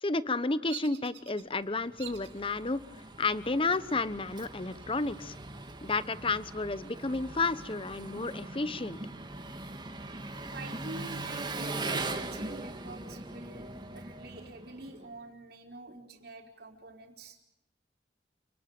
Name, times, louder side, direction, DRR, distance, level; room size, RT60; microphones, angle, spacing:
voice 1, 0.0-2.8 3.2-5.4 5.8-9.0, left 3 dB, 30° left, 15 dB, 1.0 m, -31 dB
Bird vocalization bird call bird song, 0.7-1.4 2.0-2.4 3.0-3.5 4.7-5.4 5.8-5.9 6.3-7.8, right 11 dB, 85° right, 2.3 m, -48 dB
Engine, 1.5-15.1, right 2 dB, 25° right, 2.3 m, -41 dB
voice 2, 10.5-17.4, right 2 dB, 60° right, 3 dB, 4.7 m, -46 dB
29.0 x 20.0 x 8.9 m, 0.77 s
head